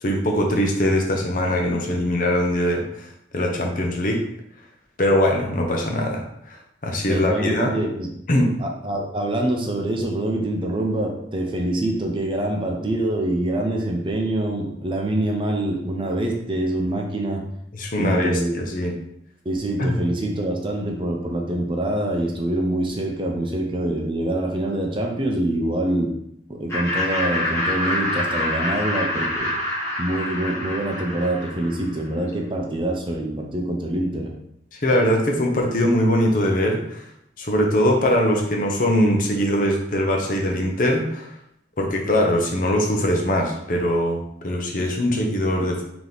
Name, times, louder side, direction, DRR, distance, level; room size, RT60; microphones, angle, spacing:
voice 1, 0.0-4.2 5.0-7.7 8.3-8.5 17.7-18.9 19.8-20.0 34.7-37.1 37.4-41.3 41.8-45.8, left 1 dB, 45° left, 1 dB, 0.7 m, -22 dB
voice 2, 6.9-8.1 8.6-17.4 18.0-18.5 19.4-26.1 26.5-29.5 30.0-34.3, right 1 dB, 30° right, 1 dB, 0.5 m, -25 dB
Laughter, 26.7-32.0, left 1 dB, 15° left, 0.8 m, -26 dB
3.3 x 2.9 x 3.9 m, 0.75 s
head